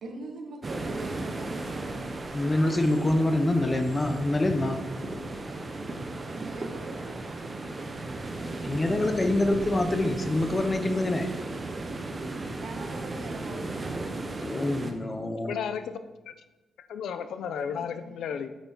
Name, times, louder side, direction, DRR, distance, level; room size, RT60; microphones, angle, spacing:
voice 1, 0.0-1.7 6.3-7.2 12.6-14.1 17.4-18.5, right 2 dB, 55° right, 2 dB, 1.5 m, -44 dB
sound 1, 0.6-14.9, right 2 dB, 25° right, 0.7 m, -35 dB
voice 2, 2.3-4.8 8.6-11.3 14.4-15.5, left 1 dB, 15° left, 6 dB, 0.6 m, -25 dB
voice 3, 15.5-16.0 16.3-16.4 16.8-18.5, left 7 dB, 80° left, 11 dB, 0.5 m, -33 dB
8.3 x 5.6 x 4.5 m, 1.1 s
wide cardioid pair, 160°, 0 cm